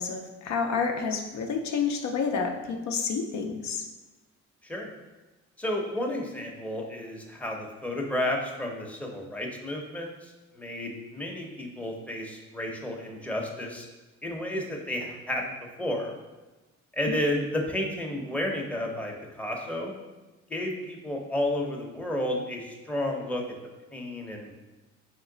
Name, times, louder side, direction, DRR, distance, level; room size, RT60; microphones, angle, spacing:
voice 1, 0.0-3.8 17.1-17.2, left 5 dB, 65° left, 4 dB, 0.5 m, -29 dB
voice 2, 5.6-13.9 14.2-16.1 16.9-19.9 20.5-23.4 23.9-24.5, left 1 dB, 5° left, 0 dB, 0.6 m, -32 dB
3.7 x 3.1 x 3.8 m, 1.1 s
cardioid pair, 90°, 30 cm